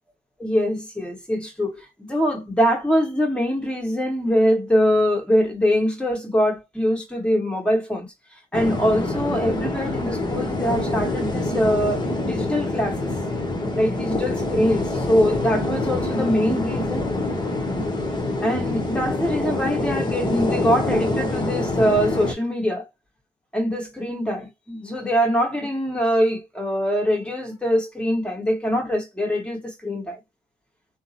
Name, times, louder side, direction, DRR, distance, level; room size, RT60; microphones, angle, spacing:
voice 1, 0.4-8.1 8.5-13.1 13.7-17.1 18.4-22.9 23.5-30.2, equal, 5° left, 1.5 m, -23 dB
sound 1, 8.5-22.3, left 2 dB, 20° left, 1.1 m, -26 dB
3.5 x 2.1 x 2.7 m
cardioid pair, 90°, 20 cm